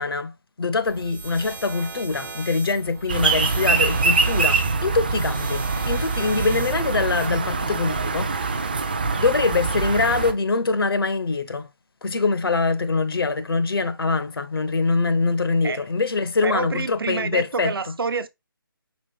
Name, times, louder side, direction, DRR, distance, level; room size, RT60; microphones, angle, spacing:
voice 1, 0.0-8.6 9.2-11.7 12.0-18.0, left 4 dB, 80° left, 0.7 m, -24 dB
sound 1, 0.8-7.3, right 4 dB, 55° right, 1.0 m, -38 dB
sound 2, 3.1-10.3, right 4 dB, 25° right, 0.3 m, -24 dB
voice 2, 16.4-18.3, right 4 dB, 75° right, 0.6 m, -27 dB
5.2 x 3.4 x 2.3 m
hypercardioid pair, 170°, 12 cm